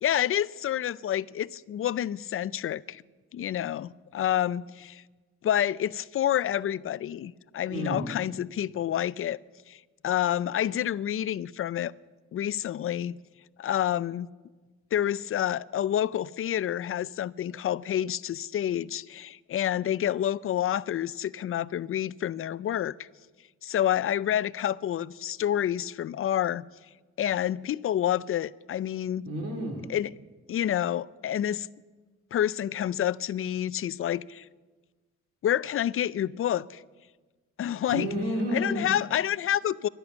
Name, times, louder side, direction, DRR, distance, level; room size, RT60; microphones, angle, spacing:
voice 1, 0.0-3.0 3.3-5.0 5.4-9.4 9.7-11.9 12.3-13.2 13.6-14.3 14.9-22.9 23.6-26.7 27.2-29.2 29.9-30.1 30.5-31.7 32.3-34.5 35.4-36.8 37.6-38.1 38.5-39.9, left 11 dB, 45° left, 0.4 m, -28 dB
voice 2, 7.7-8.2 29.2-29.9 37.9-38.8, equal, 50° right, 2.7 m, -31 dB
12.0 x 10.5 x 8.0 m
cardioid pair, 90°, 30 cm